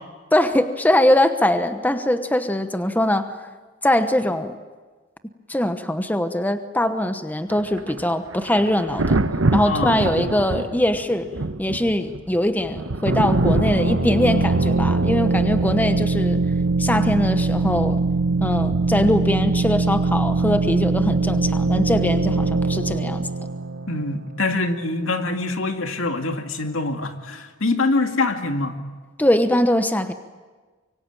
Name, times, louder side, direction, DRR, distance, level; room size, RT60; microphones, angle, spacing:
voice 1, 0.3-3.4 3.8-4.6 5.5-9.2 9.5-11.3 11.6-16.4 16.8-18.0 18.4-23.3 29.2-30.1, left 1 dB, 10° left, 9 dB, 1.0 m, -21 dB
Thunder, 7.5-21.2 22.8-23.0, right 2 dB, 80° right, 1.3 m, -28 dB
voice 2, 9.6-10.3 23.9-28.8, left 2 dB, 80° left, 5 dB, 2.2 m, -24 dB
sound 1, 13.0-24.6, right 3 dB, 65° right, 1.5 m, -22 dB
25.0 x 23.5 x 9.0 m, 1.3 s
head